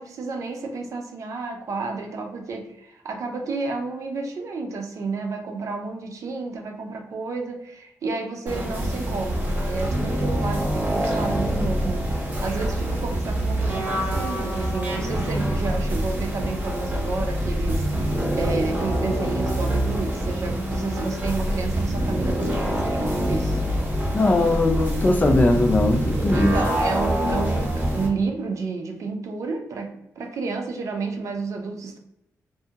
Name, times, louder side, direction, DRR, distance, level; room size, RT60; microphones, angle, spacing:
voice 1, 0.0-23.6 26.3-32.0, right 4 dB, 60° right, 3 dB, 0.5 m, -31 dB
sound 1, 8.5-28.1, right 1 dB, 30° right, 0.7 m, -25 dB
voice 2, 24.1-26.6, left 2 dB, 25° left, 5 dB, 0.3 m, -20 dB
2.7 x 2.6 x 2.3 m, 0.83 s
wide cardioid pair, 115°, 6 cm